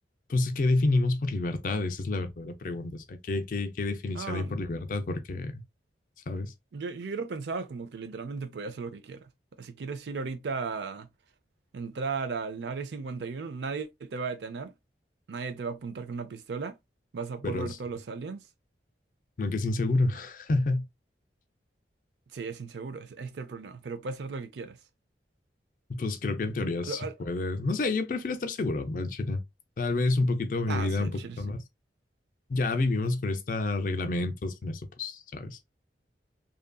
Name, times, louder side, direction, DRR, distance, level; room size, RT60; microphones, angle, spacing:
voice 1, 0.3-5.6 6.3-6.5 17.4-17.7 19.4-20.8 25.9-29.4 29.8-31.6 32.5-35.6, left 2 dB, 45° left, 0.4 m, -29 dB
voice 2, 4.1-4.5 6.7-9.2 9.6-11.1 11.7-14.7 15.3-16.8 17.1-18.4 22.3-24.8 26.8-27.1 30.7-31.4, right 4 dB, 75° right, 0.4 m, -36 dB
2.7 x 2.5 x 2.2 m
head